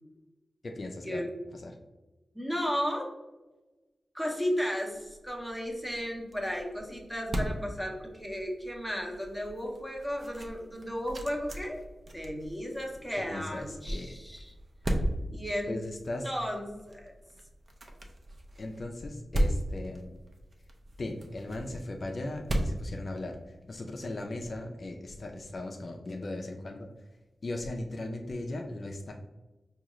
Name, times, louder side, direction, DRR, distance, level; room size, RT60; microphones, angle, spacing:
voice 1, 0.6-1.2 1.5-1.7 13.2-14.1 15.7-16.3 18.6-20.2 21.0-27.1 27.4-29.1, left 2 dB, 45° left, 2 dB, 0.3 m, -38 dB
voice 2, 2.3-3.1 4.1-11.8 12.1-14.5 15.3-15.8 16.2-17.1, equal, ahead, 0 dB, 0.7 m, -34 dB
sound 1, 5.0-23.8, right 1 dB, 45° right, 0.5 m, -37 dB
4.9 x 2.3 x 3.0 m, 1.1 s
wide cardioid pair, 130°, 0 cm